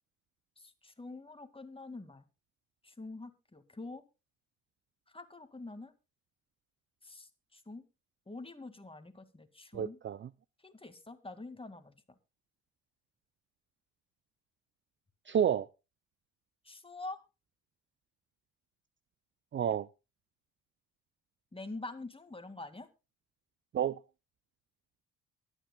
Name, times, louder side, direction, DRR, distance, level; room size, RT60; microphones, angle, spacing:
voice 1, 0.6-2.3 2.8-4.0 5.1-5.9 7.0-7.9 8.3-10.0 10.6-11.9 16.6-17.2 21.5-22.9, left 2 dB, 15° left, 2.1 m, -46 dB
voice 2, 9.7-10.3 15.3-15.7 19.5-19.9 23.7-24.0, right 9 dB, 30° right, 0.5 m, -30 dB
23.5 x 9.2 x 2.3 m
hypercardioid pair, 55°, 38 cm